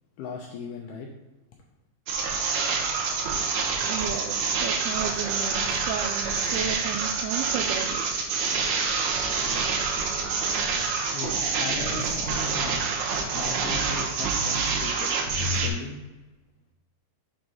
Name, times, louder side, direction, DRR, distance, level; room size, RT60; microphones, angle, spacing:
voice 1, 0.2-1.1 11.1-12.8 13.3-15.1 15.5-16.0, left 4 dB, 85° left, 0 dB, 2.2 m, -37 dB
sound 1, 2.1-15.7, right 4 dB, 75° right, 2.7 m, -27 dB
voice 2, 3.9-8.1, right 8 dB, 90° right, 2 dB, 2.2 m, -33 dB
7.3 x 4.0 x 4.8 m, 1.1 s
omnidirectional pair, 5.1 m